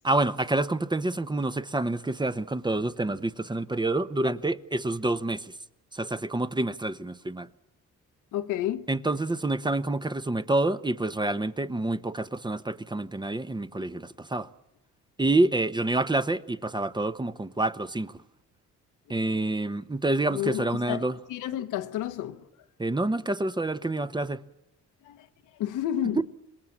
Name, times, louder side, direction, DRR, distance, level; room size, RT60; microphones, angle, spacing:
voice 1, 0.0-5.6 5.9-7.5 8.9-14.5 15.2-18.2 19.1-21.2 22.8-24.4, right 2 dB, 15° right, 0.9 m, -27 dB
voice 2, 8.3-8.9 19.1-19.2 20.3-22.5 25.0-25.3 25.6-26.2, left 11 dB, 90° left, 1.3 m, -31 dB
27.0 x 21.0 x 7.3 m
cardioid pair, 90°, 30 cm